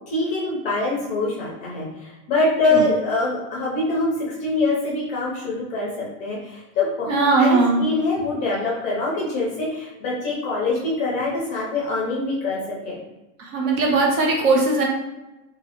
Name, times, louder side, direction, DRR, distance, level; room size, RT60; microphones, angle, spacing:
voice 1, 0.1-7.1 7.4-13.0, left 2 dB, 20° left, -4 dB, 0.5 m, -24 dB
voice 2, 7.1-7.8 13.4-14.8, right 3 dB, 80° right, -1 dB, 1.1 m, -19 dB
3.0 x 2.4 x 2.8 m, 1.0 s
supercardioid pair, 175°, 42 cm